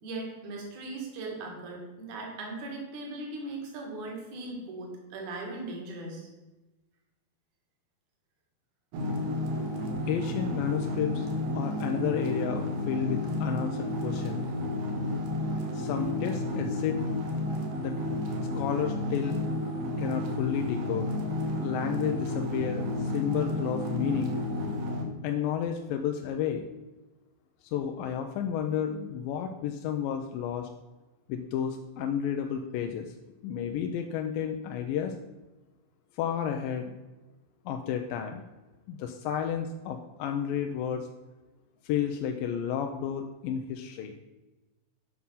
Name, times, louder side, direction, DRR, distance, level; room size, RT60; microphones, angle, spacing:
voice 1, 0.0-6.3, right 2 dB, 55° right, 0 dB, 3.2 m, -39 dB
sound 1, 8.9-25.0, left 1 dB, 75° right, 2.8 m, -31 dB
voice 2, 10.0-11.3 11.5-14.5 15.7-17.0 17.8-18.0 18.6-19.4 20.0-21.1 21.6-24.4 25.2-26.6 27.6-30.7 31.3-33.1 33.4-35.1 36.1-37.0 37.7-38.4 38.9-41.1 41.8-44.1, left 8 dB, 80° left, 4 dB, 2.2 m, -31 dB
9.6 x 5.7 x 5.6 m, 1.1 s
omnidirectional pair, 4.3 m